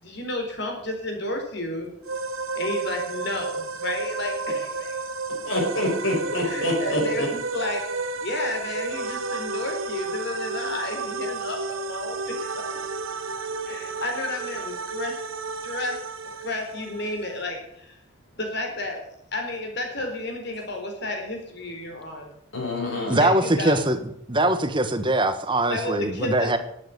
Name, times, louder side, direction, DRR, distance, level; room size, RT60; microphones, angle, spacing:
voice 1, 0.0-1.9 2.5-5.0 6.4-7.8 8.2-12.3 12.7-12.8 13.6-15.1 15.6-16.0 16.4-18.0 18.3-19.0 19.3-22.3 23.2-23.8 25.7-26.6, left 1 dB, 55° left, 4.3 m, -31 dB
sound 1, 2.1-17.4, right 3 dB, 75° right, 1.4 m, -32 dB
voice 2, 5.4-7.3 22.5-23.2, left 1 dB, 70° left, 5.9 m, -26 dB
voice 3, 23.1-24.0 24.3-26.6, right 1 dB, 25° right, 1.3 m, -22 dB
12.5 x 8.8 x 9.5 m
head